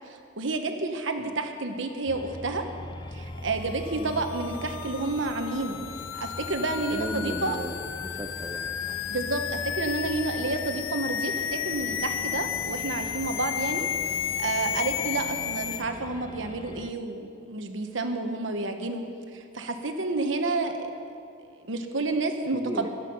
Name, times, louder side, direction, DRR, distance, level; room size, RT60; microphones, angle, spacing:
voice 1, 0.1-2.6 3.1-5.8 6.1-7.6 9.1-19.0 19.3-20.9 21.5-22.9, right 2 dB, 70° right, 5 dB, 1.2 m, -30 dB
sound 1, 2.1-16.9, left 1 dB, 20° left, 0.4 m, -42 dB
sound 2, 3.6-15.8, left 9 dB, 85° left, 0.5 m, -33 dB
voice 2, 6.9-9.0 22.5-22.9, right 1 dB, 20° right, 4 dB, 0.7 m, -36 dB
14.5 x 12.5 x 5.5 m, 2.5 s
head